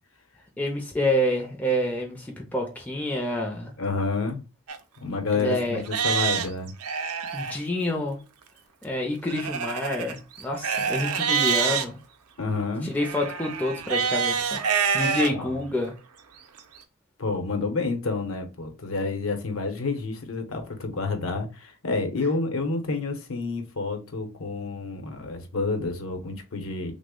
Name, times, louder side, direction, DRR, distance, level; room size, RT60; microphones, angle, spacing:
voice 1, 0.6-3.7 5.3-5.8 7.3-8.2 8.8-12.0 12.8-14.6 14.9-15.9, left 1 dB, 5° left, 0.4 m, -28 dB
voice 2, 3.8-4.4 5.0-6.7 12.4-12.9 15.3-15.5 17.2-26.9, left 3 dB, 70° left, 0.7 m, -29 dB
Livestock farm animals working animals, 4.7-4.8 5.4-5.5 5.8-7.6 9.3-11.9 13.0-15.3 15.9-16.0 16.6-16.7, right 6 dB, 85° right, 0.5 m, -26 dB
3.3 x 2.0 x 3.6 m
head